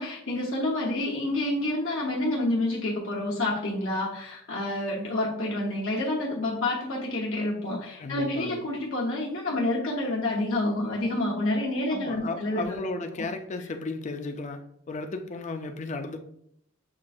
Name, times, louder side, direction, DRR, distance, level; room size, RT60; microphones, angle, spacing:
voice 1, 0.0-12.7 13.2-13.3, left 1 dB, 90° left, 1.0 m, -28 dB
voice 2, 8.0-8.6 11.9-14.6 14.9-16.2, left 3 dB, 35° left, 0.4 m, -34 dB
7.2 x 2.4 x 2.5 m
head